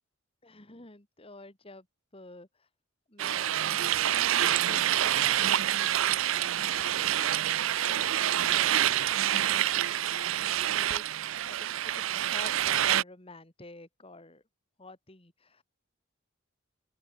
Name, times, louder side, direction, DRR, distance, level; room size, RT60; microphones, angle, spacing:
voice 1, 0.4-1.9 2.1-2.7 3.1-7.5 7.8-9.0 9.5-9.9 10.6-11.1 11.4-14.4 14.8-15.6, left 2 dB, 25° left, 2.3 m, -50 dB
sound 1, 3.2-13.0, right 12 dB, 75° right, 0.5 m, -27 dB
open air
head